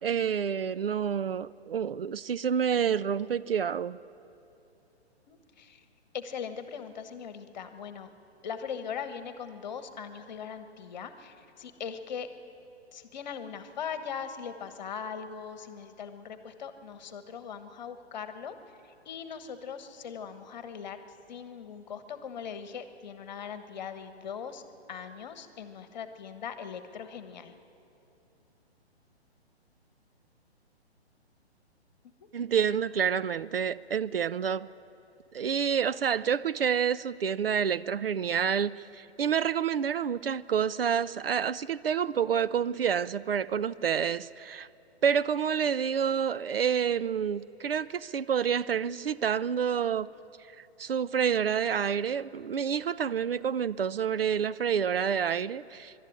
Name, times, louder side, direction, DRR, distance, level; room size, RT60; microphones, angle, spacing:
voice 1, 0.0-4.0 32.3-34.7 35.3-44.7 45.0-50.1 50.8-55.9, right 7 dB, 60° right, 0.5 m, -28 dB
voice 2, 5.3-5.8 6.1-8.1 8.4-12.3 12.9-18.6 19.0-21.0 21.3-24.6 24.9-27.5, left 7 dB, 40° left, 1.2 m, -40 dB
23.5 x 12.0 x 9.8 m
figure-of-eight pair, 125°, 33 cm